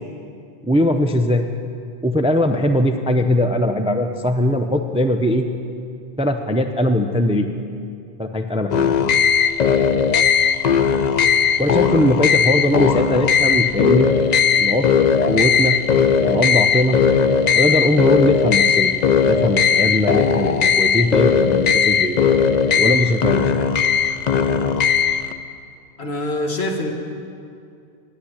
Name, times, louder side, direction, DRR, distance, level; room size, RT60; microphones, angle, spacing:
voice 1, 0.6-1.5 2.0-5.5 6.2-7.5 8.2-9.0 11.6-14.1 14.6-14.9 15.3-15.8 16.2-17.0 17.5-18.9 19.3-22.1 22.8-23.5, left 1 dB, 10° right, 7 dB, 0.3 m, -20 dB
sound 1, 8.7-25.3, left 6 dB, 50° left, 0.6 m, -17 dB
voice 2, 26.0-26.9, left 1 dB, 80° left, 2 dB, 1.7 m, -25 dB
9.8 x 8.8 x 9.9 m, 2.4 s
omnidirectional pair, 1.1 m